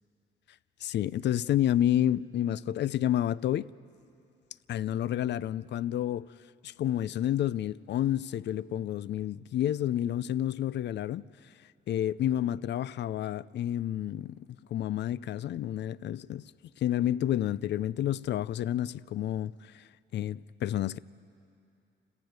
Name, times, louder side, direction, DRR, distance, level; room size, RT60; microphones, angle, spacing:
voice 1, 0.8-3.7 4.7-6.3 6.6-11.2 11.9-14.5 14.7-16.4 16.8-19.8 20.1-21.0, left 11 dB, 60° left, 0.5 m, -30 dB
30.0 x 15.0 x 9.5 m
cardioid pair, 90°, 20 cm